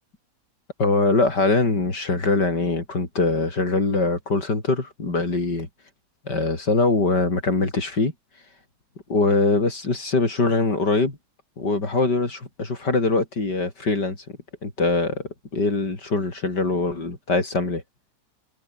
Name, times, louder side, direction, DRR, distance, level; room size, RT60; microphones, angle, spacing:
voice 1, 0.8-5.7 6.3-8.1 9.1-11.2 11.6-14.2 14.6-17.8, left 3 dB, 85° left, 5.6 m, -22 dB
omnidirectional pair, 1.8 m